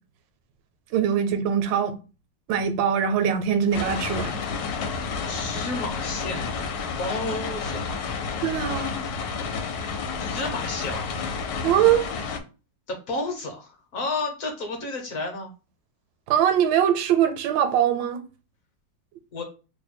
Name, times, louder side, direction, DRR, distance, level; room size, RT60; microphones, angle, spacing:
voice 1, 0.9-1.9 2.5-4.5 8.4-9.0 11.6-12.1 16.3-18.2, right 9 dB, 85° right, 1.3 m, -22 dB
sound 1, 3.7-12.4, left 5 dB, 80° left, 1.2 m, -30 dB
voice 2, 5.2-6.7 7.0-8.0 10.2-11.2 12.9-15.5 19.3-19.4, left 2 dB, 55° left, 1.1 m, -32 dB
3.1 x 2.2 x 4.2 m
omnidirectional pair, 2.0 m